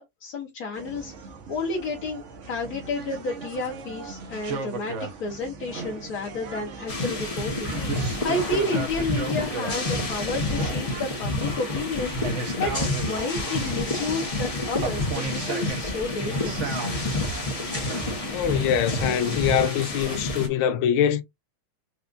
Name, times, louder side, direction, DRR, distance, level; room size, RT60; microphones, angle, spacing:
voice 1, 0.0-16.8, left 3 dB, 55° left, 1.2 m, -31 dB
sound 1, 0.7-20.2, right 4 dB, 55° right, 0.8 m, -36 dB
sound 2, 6.9-20.5, left 2 dB, 40° left, 0.5 m, -29 dB
voice 2, 18.3-21.2, left 9 dB, 85° left, 1.4 m, -23 dB
4.5 x 2.4 x 2.4 m
omnidirectional pair, 2.3 m